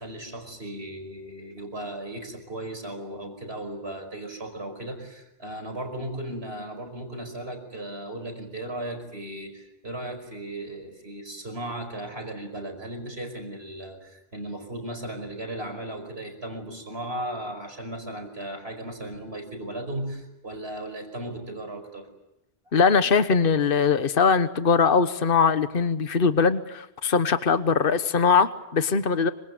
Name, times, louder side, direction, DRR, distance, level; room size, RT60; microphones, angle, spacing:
voice 1, 0.0-22.1, right 1 dB, 80° right, 6 dB, 5.5 m, -36 dB
voice 2, 22.7-29.3, left 5 dB, 60° left, 11 dB, 1.4 m, -21 dB
26.5 x 25.5 x 8.3 m, 0.91 s
omnidirectional pair, 1.1 m